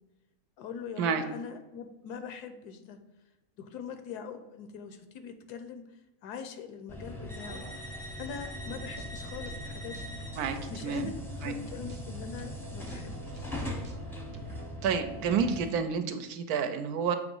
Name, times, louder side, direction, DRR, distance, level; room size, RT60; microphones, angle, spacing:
voice 1, 0.6-3.0 3.6-5.8 6.2-7.6 8.2-10.0 10.7-11.1 11.4-13.5, left 6 dB, 80° left, 8 dB, 1.2 m, -42 dB
sound 1, 6.9-15.7, left 1 dB, ahead, 0.5 m, -40 dB
sound 2, 8.6-15.7, right 1 dB, 45° right, 0.7 m, -49 dB
voice 2, 10.4-11.1 11.4-11.5 14.8-17.2, right 6 dB, 75° right, 8 dB, 1.0 m, -29 dB
7.6 x 3.0 x 5.3 m, 0.99 s
omnidirectional pair, 1.7 m